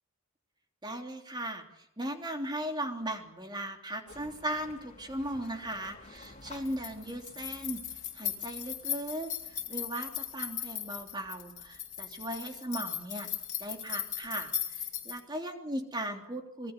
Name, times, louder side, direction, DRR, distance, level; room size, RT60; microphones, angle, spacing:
voice 1, 0.8-1.6 2.0-13.3 13.6-16.7, right 1 dB, 20° right, 3 dB, 3.2 m, -37 dB
sound 1, 4.1-15.2, left 9 dB, 35° left, 3.6 m, -39 dB
26.0 x 22.5 x 6.8 m, 0.77 s
head